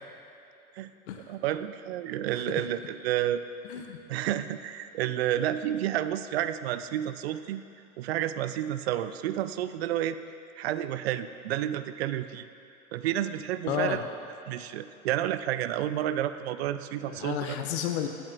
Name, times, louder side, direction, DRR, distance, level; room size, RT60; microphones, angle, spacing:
voice 1, 1.2-3.4 4.1-7.6 8.0-10.2 10.6-12.5 12.9-14.0 14.5-17.6, right 12 dB, 50° right, 12 dB, 0.4 m, -30 dB
voice 2, 2.3-2.7 3.7-4.0 13.7-14.0 17.1-18.1, left 9 dB, 50° left, 5 dB, 0.6 m, -32 dB
15.5 x 7.8 x 2.5 m, 2.8 s
figure-of-eight pair, 95°, 43 cm